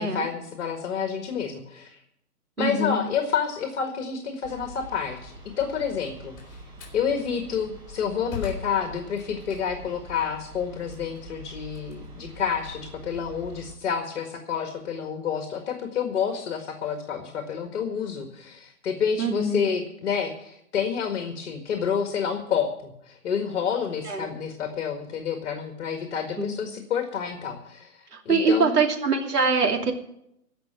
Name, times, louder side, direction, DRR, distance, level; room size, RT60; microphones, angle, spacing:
voice 1, 0.0-2.0 2.6-6.4 6.9-28.8, left 7 dB, 50° left, 5 dB, 1.9 m, -29 dB
voice 2, 2.6-3.0 19.2-19.7 24.1-24.3 26.4-26.5 28.1-29.9, right 4 dB, 85° right, 2 dB, 2.9 m, -23 dB
sound 1, 4.4-13.8, right 1 dB, 10° right, 1.2 m, -45 dB
Slam, 5.9-7.0 7.6-10.0 10.4-12.8, left 6 dB, 20° left, 4.1 m, -42 dB
16.0 x 5.9 x 9.0 m, 0.77 s
hypercardioid pair, 150°, 46 cm